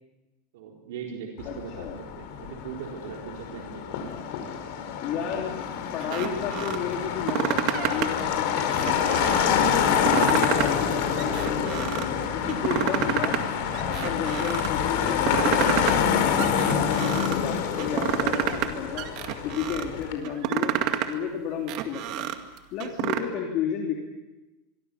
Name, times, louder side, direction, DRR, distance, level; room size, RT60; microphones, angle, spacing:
voice 1, 0.5-4.0, right 6 dB, 80° right, 0 dB, 4.1 m, -39 dB
Motor vehicle (road), 1.4-20.1, left 7 dB, 60° left, 4.7 m, -27 dB
voice 2, 1.4-2.0 5.0-5.6 5.9-13.4 13.8-19.1 19.4-20.7 21.1-22.3 22.7-23.9, left 8 dB, 45° left, 0 dB, 3.2 m, -33 dB
sound 1, 6.0-6.8 7.1-8.2 8.6-9.5 9.9-10.9 11.2-12.1 12.5-13.4 13.7-14.7 15.1-16.1 16.4-17.4 17.8-18.7 19.0-19.9 20.2-21.1 21.5-23.2, right 11 dB, 45° right, 2.1 m, -29 dB
25.0 x 24.0 x 7.0 m, 1.1 s
supercardioid pair, 155°, 0 cm